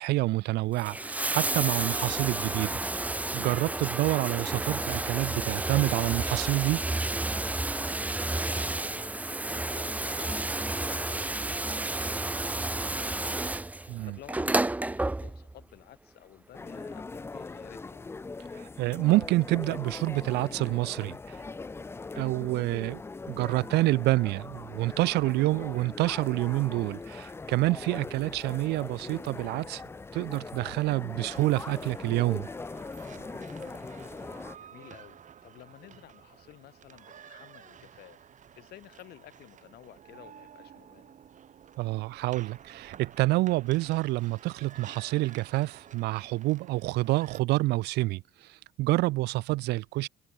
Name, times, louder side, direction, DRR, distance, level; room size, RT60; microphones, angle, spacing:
voice 1, 0.0-2.7 3.3-6.8 13.9-14.1 18.6-21.4 22.2-23.0 23.3-29.8 30.1-32.5 41.8-48.2 48.8-50.1, right 19 dB, 75° right, 0.5 m, -28 dB
Bathtub (filling or washing), 0.7-15.6 16.7-16.8, right 2 dB, 10° right, 0.8 m, -31 dB
voice 2, 8.0-18.1 25.2-25.7 34.2-38.2 38.5-41.2, left 14 dB, 70° left, 2.5 m, -53 dB
sound 1, 16.5-34.6, left 3 dB, 15° left, 0.5 m, -41 dB
sound 2, 31.3-47.4, right 8 dB, 50° right, 4.4 m, -52 dB
cardioid pair, 110°, 17 cm